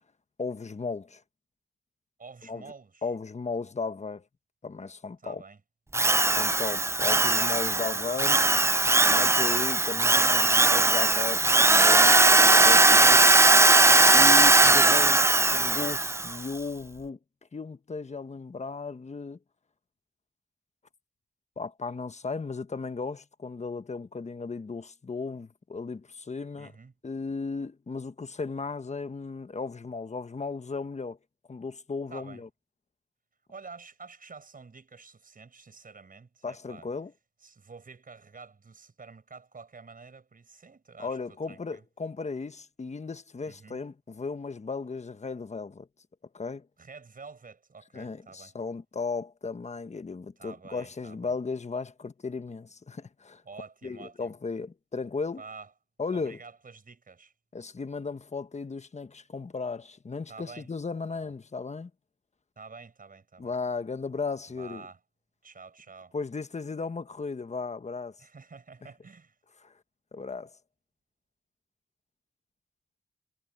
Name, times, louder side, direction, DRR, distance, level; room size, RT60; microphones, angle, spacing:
voice 1, 0.4-1.2 2.5-2.7 3.0-4.2 4.6-5.4 6.2-8.4 9.0-13.3 14.1-15.2 15.5-17.2 17.5-19.4 21.6-26.7 27.0-31.2 31.5-32.5 36.4-37.1 41.0-45.9 46.3-46.7 47.9-53.4 53.8-55.4 56.0-56.4 57.5-61.9 63.4-64.8 66.1-68.2 69.6-69.7 70.1-70.5, left 4 dB, 40° left, 1.3 m, -35 dB
voice 2, 2.2-3.1 5.2-5.6 7.0-8.9 11.9-12.3 12.8-13.5 26.6-26.9 32.1-32.4 33.5-36.9 37.4-41.2 41.5-41.8 43.5-43.8 46.8-48.5 50.4-51.3 53.4-54.3 55.4-55.7 56.1-57.3 60.3-60.7 61.1-61.3 62.6-63.5 64.6-65.0 65.4-66.1 68.2-69.4, right 4 dB, 50° right, 6.3 m, -48 dB
Drill, 5.9-16.4, right 2 dB, 15° right, 0.4 m, -19 dB
cardioid pair, 65°, 18 cm